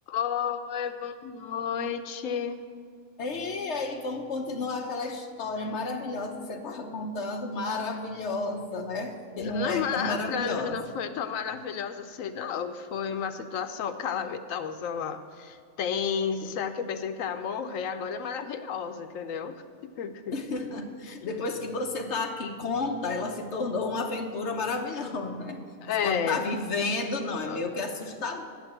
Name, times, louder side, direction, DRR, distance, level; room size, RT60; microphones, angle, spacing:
voice 1, 0.1-2.7 9.4-20.3 21.1-21.2 25.8-26.5 27.4-27.6, left 7 dB, 90° left, 9 dB, 1.1 m, -32 dB
voice 2, 3.2-10.8 16.4-16.5 20.3-25.6 26.0-28.4, left 3 dB, 60° left, 4 dB, 1.3 m, -32 dB
8.9 x 7.3 x 8.8 m, 2.2 s
omnidirectional pair, 1.3 m